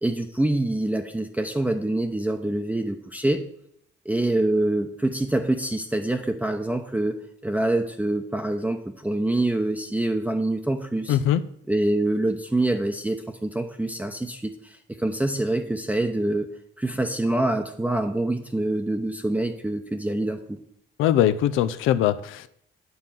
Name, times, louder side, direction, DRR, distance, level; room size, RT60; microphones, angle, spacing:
voice 1, 0.0-3.4 4.0-11.2 11.7-16.5 16.8-20.6, right 1 dB, 5° right, 4 dB, 0.7 m, -25 dB
voice 2, 11.1-11.4 21.0-22.5, left 11 dB, 90° left, 12 dB, 0.5 m, -21 dB
9.4 x 3.9 x 7.3 m, 0.70 s
cardioid pair, 90°, 20 cm